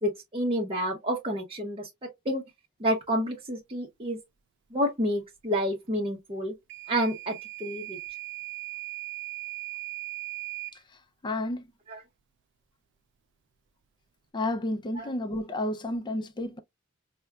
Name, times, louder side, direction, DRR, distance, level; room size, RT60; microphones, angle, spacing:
voice 1, 0.0-2.4 2.8-4.2 4.7-6.5 6.9-8.0 11.9-12.0 15.0-15.1, equal, 25° right, 0.7 m, -29 dB
Microwave oven / Alarm, 6.7-10.8, right 19 dB, 60° right, 0.3 m, -38 dB
voice 2, 11.2-11.7 14.3-16.6, left 1 dB, 20° left, 0.4 m, -31 dB
4.6 x 2.1 x 2.2 m
head